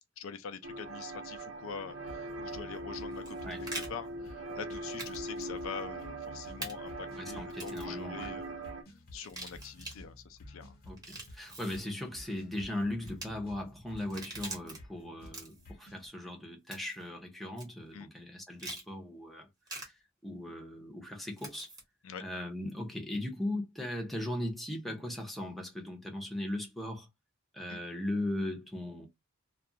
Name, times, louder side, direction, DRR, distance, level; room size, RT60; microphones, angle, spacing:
voice 1, 0.2-8.7 9.1-10.8 17.9-18.1 22.0-22.2 27.7-27.8, left 6 dB, 80° left, 0.4 m, -44 dB
sound 1, 0.6-8.8, right 2 dB, 75° right, 0.8 m, -41 dB
sound 2, 2.1-16.1, left 1 dB, 50° left, 0.7 m, -53 dB
sound 3, 3.1-3.9 5.0-5.2 5.4-5.5 6.6-6.7 7.5-7.9 9.1-10.0 10.9-11.8 13.0-13.3 14.0-14.8 15.2-15.7 16.7-17.0 17.6-17.7 18.6-18.8 19.7-19.9 21.4-21.8, right 2 dB, 20° right, 1.0 m, -43 dB
voice 2, 7.2-8.4 10.9-19.5 20.2-21.7 22.2-27.1 27.5-29.1, left 1 dB, ahead, 0.6 m, -38 dB
2.4 x 2.3 x 2.7 m
head